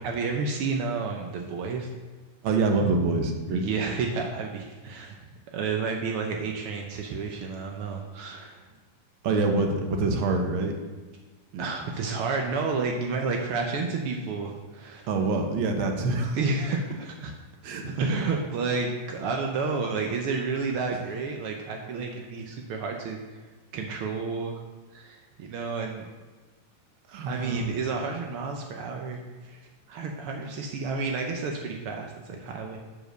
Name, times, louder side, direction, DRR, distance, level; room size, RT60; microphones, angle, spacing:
voice 1, 0.0-1.9 3.5-5.2 5.5-8.6 11.6-15.1 16.3-17.3 18.0-24.6 24.9-26.1 27.3-29.6 29.9-32.8, right 4 dB, 85° right, 2 dB, 1.2 m, -31 dB
voice 2, 2.4-3.6 9.2-10.7 11.5-11.7 15.1-16.4 17.6-18.1 27.1-27.7, right 3 dB, 65° right, 3 dB, 1.2 m, -26 dB
9.3 x 5.1 x 6.5 m, 1.3 s
omnidirectional pair, 3.6 m